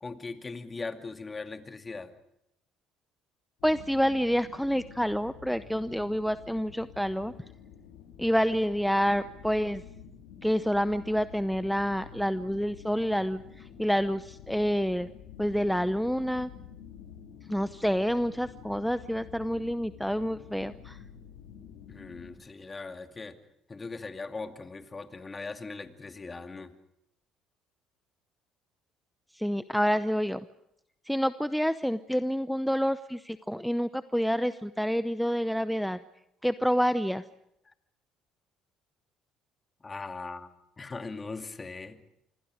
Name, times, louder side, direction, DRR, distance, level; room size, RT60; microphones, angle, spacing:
voice 1, 0.0-2.1 21.9-23.4 23.7-26.7 39.8-40.5 40.8-42.0, left 3 dB, 25° left, 6 dB, 2.3 m, -39 dB
sound 1, 3.6-22.4, left 8 dB, 80° left, 3.5 m, -49 dB
voice 2, 3.6-7.3 8.2-9.8 10.4-15.1 15.4-16.5 17.5-21.0 29.3-30.4 31.0-36.0 36.4-37.2, equal, ahead, 12 dB, 0.7 m, -28 dB
27.0 x 24.5 x 5.1 m, 0.80 s
supercardioid pair, 70°, 0 cm